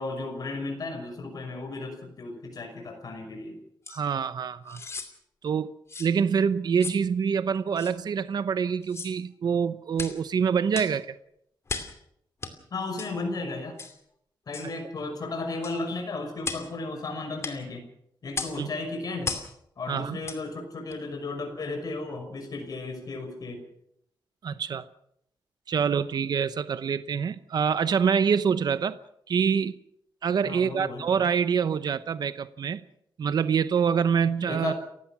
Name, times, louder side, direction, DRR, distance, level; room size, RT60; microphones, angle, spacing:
voice 1, 0.0-3.6 12.7-13.8 14.5-17.8 18.2-19.3 19.8-23.6 30.4-31.1 34.5-34.7, left 3 dB, 50° left, 3 dB, 5.9 m, -34 dB
sound 1, 3.8-4.0 4.7-5.1 5.9-6.1 6.8-7.0 7.8-7.9 8.8-9.2 9.9-10.2 10.7-11.0 11.7-12.0 12.4-12.5 13.0-13.1 13.8-14.0 14.5-14.7 15.6-15.8 16.4-16.7 17.4-17.6 18.3-18.6 19.2-19.5 20.2-20.4 20.9-21.0, left 4 dB, 35° left, 2.6 m, -35 dB
voice 2, 3.9-4.8 5.4-5.7 6.0-11.1 18.6-18.7 19.9-20.2 24.4-24.9 25.7-29.0 29.3-29.8 30.2-32.8 33.2-34.7, right 6 dB, 55° right, 13 dB, 0.8 m, -26 dB
30.0 x 16.0 x 6.0 m, 0.73 s
wide cardioid pair, 165°, 8 cm